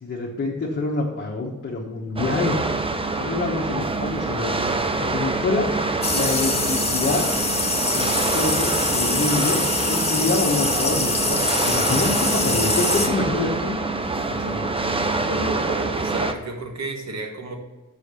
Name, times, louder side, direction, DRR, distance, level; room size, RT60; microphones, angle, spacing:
voice 1, 0.0-2.6 3.2-4.5 5.0-5.7 6.1-7.3 7.9-9.6 9.9-11.4 11.6-13.8 14.3-14.7, left 3 dB, 45° left, -4 dB, 1.3 m, -26 dB
sound 1, 2.2-16.3, right 3 dB, 20° right, 0.5 m, -25 dB
sound 2, 6.0-13.1, left 3 dB, 20° left, 1.0 m, -24 dB
voice 2, 15.3-17.6, right 2 dB, 65° right, 3 dB, 1.5 m, -31 dB
6.9 x 5.7 x 6.7 m, 1.1 s
wide cardioid pair, 155°, 29 cm